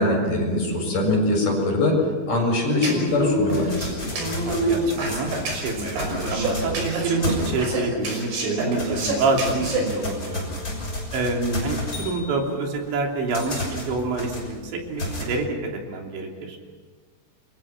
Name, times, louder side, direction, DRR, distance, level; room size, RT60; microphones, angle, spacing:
voice 1, 0.0-2.0 2.3-3.7, left 1 dB, 45° left, 0 dB, 8.5 m, -22 dB
sound 1, 2.7-9.8, right 2 dB, 60° right, 7.6 m, -27 dB
sound 2, 3.1-7.9 8.3-15.2, left 1 dB, 20° left, 6.6 m, -33 dB
voice 2, 4.4-10.6 11.1-15.5 15.9-16.6, right 3 dB, 80° right, 1 dB, 5.6 m, -27 dB
29.5 x 24.0 x 6.1 m, 1.5 s
omnidirectional pair, 5.2 m